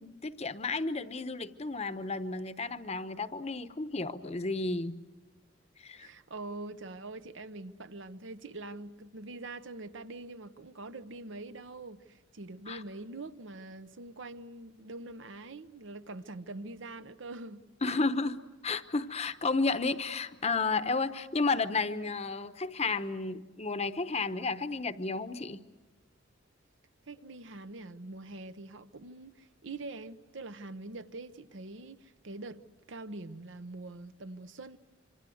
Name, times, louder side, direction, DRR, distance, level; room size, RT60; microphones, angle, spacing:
voice 1, 0.0-5.0 5.8-6.1 12.7-12.8 17.8-18.3 18.6-25.6, left 3 dB, 30° left, 0.9 m, -32 dB
voice 2, 5.9-18.0 27.1-32.6 32.9-34.8, right 2 dB, 65° right, 0.9 m, -44 dB
26.5 x 25.5 x 7.8 m
head